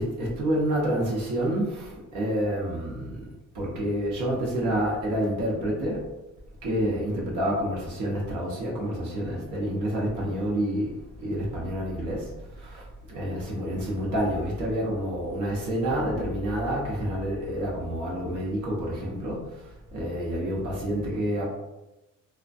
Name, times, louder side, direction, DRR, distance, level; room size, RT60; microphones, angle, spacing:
voice 1, 0.0-3.2 3.5-6.0 6.6-10.9 11.2-12.3 12.6-12.8 13.1-19.4 19.9-21.5, equal, 80° right, -4 dB, 0.8 m, -28 dB
2.5 x 2.2 x 2.3 m, 1.0 s
cardioid pair, 90°, 30 cm